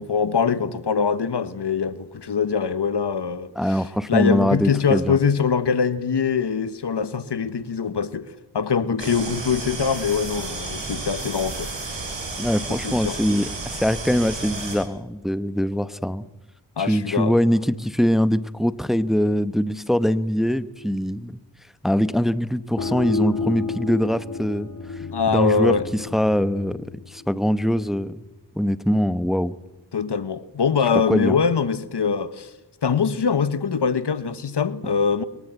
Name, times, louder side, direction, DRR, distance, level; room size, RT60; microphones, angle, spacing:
voice 1, 0.0-3.8 4.1-12.3 12.7-13.2 16.8-17.4 25.1-25.9 29.9-32.5 32.8-35.2, left 6 dB, 70° left, 1.3 m, -23 dB
voice 2, 3.6-5.2 12.4-16.2 16.8-21.4 21.8-24.7 25.3-28.2 28.6-29.5 31.1-31.4, equal, ahead, 1.0 m, -22 dB
sound 1, 9.0-14.8, right 3 dB, 85° right, 7.5 m, -32 dB
sound 2, 22.8-28.2, left 4 dB, 50° left, 2.0 m, -32 dB
23.0 x 21.5 x 8.2 m
cardioid pair, 40°, 43 cm